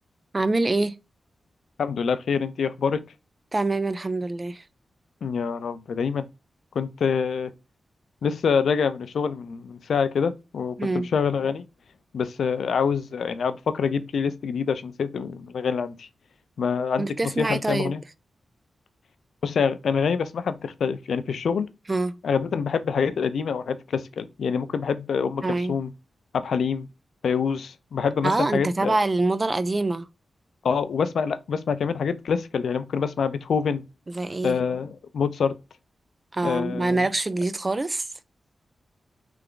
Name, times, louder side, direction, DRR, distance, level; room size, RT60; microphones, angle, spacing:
voice 1, 0.3-0.9 3.5-4.6 10.8-11.1 17.0-17.9 21.9-22.2 25.4-25.7 28.2-30.1 34.1-34.6 36.3-38.1, right 2 dB, 20° right, 0.3 m, -25 dB
voice 2, 1.8-3.0 5.2-6.2 6.8-7.5 8.2-10.8 11.1-11.6 12.1-16.1 16.6-18.0 19.4-21.7 22.2-25.9 26.3-26.9 27.2-29.0 30.6-33.8 34.4-35.6 36.4-37.1, left 6 dB, 80° left, 0.4 m, -26 dB
3.4 x 3.4 x 3.7 m
wide cardioid pair, 160°, 0 cm